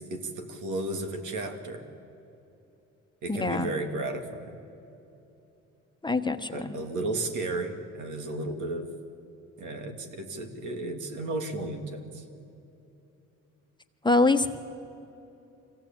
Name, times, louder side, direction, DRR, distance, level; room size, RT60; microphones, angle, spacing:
voice 1, 0.0-1.8 3.2-4.6 6.5-8.9 9.6-12.2, right 2 dB, 80° right, 5 dB, 2.5 m, -34 dB
voice 2, 3.3-3.7 6.0-6.7 14.0-14.5, left 3 dB, 15° left, 6 dB, 1.2 m, -24 dB
24.5 x 17.0 x 8.8 m, 2.8 s
cardioid pair, 90°, 30 cm